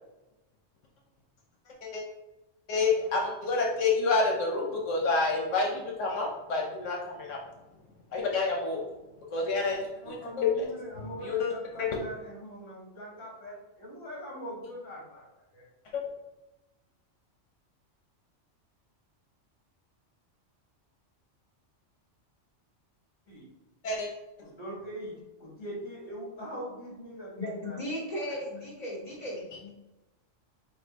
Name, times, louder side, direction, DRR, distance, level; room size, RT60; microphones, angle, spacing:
voice 1, 2.7-7.4 8.1-8.8 9.3-10.5 11.2-11.5 11.8-11.9 15.9-16.0 23.8-24.1, left 3 dB, 80° left, 0 dB, 1.1 m, -28 dB
voice 2, 10.0-15.7 23.3-23.5 24.4-25.1 25.4-27.8 28.3-28.4, equal, 60° left, -4 dB, 1.8 m, -42 dB
voice 3, 27.4-29.7, left 1 dB, 35° left, -4 dB, 1.3 m, -36 dB
5.3 x 2.1 x 3.9 m, 1.0 s
omnidirectional pair, 1.3 m